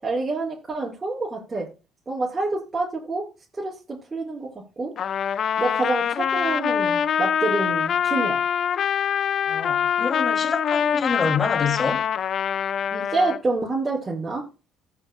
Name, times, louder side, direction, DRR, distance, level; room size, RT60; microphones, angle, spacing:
voice 1, 0.0-1.7 2.1-3.2 3.5-4.5 4.8-4.9 5.6-8.4 12.9-14.4, right 3 dB, 25° right, 5.5 m, -27 dB
Trumpet, 5.0-13.4, left 8 dB, 55° left, 0.5 m, -24 dB
voice 2, 9.5-12.1, left 4 dB, 35° left, 2.8 m, -27 dB
17.0 x 7.9 x 2.3 m
supercardioid pair, 75°, 0 cm